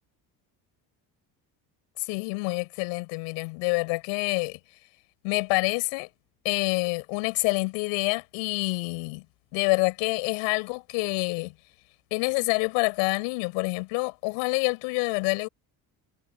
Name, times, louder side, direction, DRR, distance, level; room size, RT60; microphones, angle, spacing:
voice 1, 2.1-4.6 5.2-6.1 6.4-9.2 9.5-11.5 12.1-15.5, left 33 dB, 85° left, 6.1 m, -27 dB
supercardioid pair, 75°, 46 cm